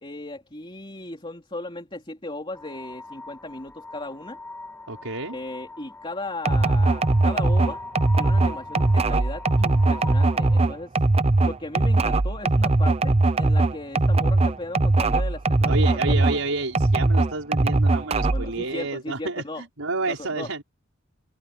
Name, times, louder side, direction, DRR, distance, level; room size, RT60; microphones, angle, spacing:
voice 1, 0.0-4.4 5.3-7.9 8.2-10.9 11.4-16.3 18.3-19.6 20.2-20.5, left 2 dB, 25° left, 3.3 m, -36 dB
sound 1, 2.5-10.6, left 2 dB, 10° left, 3.0 m, -41 dB
voice 2, 4.9-5.4 15.7-20.6, right 3 dB, 85° right, 5.4 m, -30 dB
sound 2, 6.4-16.4 16.7-18.5, right 2 dB, 30° right, 0.6 m, -20 dB
head